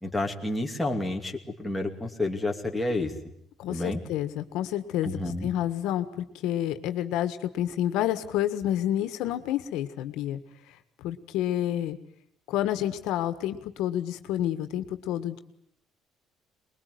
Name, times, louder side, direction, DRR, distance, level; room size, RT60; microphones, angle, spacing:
voice 1, 0.0-3.1 3.7-4.0 5.0-5.5, left 2 dB, 5° left, 1 dB, 2.6 m, -30 dB
voice 2, 3.6-10.4 11.0-12.0 12.5-15.4, left 12 dB, 80° left, 10 dB, 1.7 m, -29 dB
24.0 x 21.5 x 9.5 m, 0.71 s
cardioid pair, 150°, 0 cm